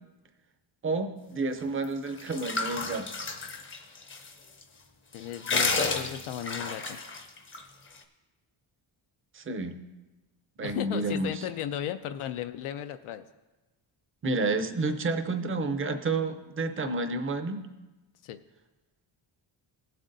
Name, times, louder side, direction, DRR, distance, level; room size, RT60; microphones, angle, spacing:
voice 1, 0.8-3.1 9.3-9.8 10.6-11.4 14.2-17.7, right 3 dB, 25° right, 8 dB, 0.5 m, -30 dB
sound 1, 1.8-4.3 4.6-4.7 5.1-7.6, left 3 dB, 25° left, 0.6 m, -31 dB
voice 2, 5.1-7.0 10.6-13.2 18.2-18.4, left 10 dB, 80° left, 9 dB, 0.6 m, -35 dB
17.0 x 7.7 x 2.6 m, 1.1 s
wide cardioid pair, 175°, 49 cm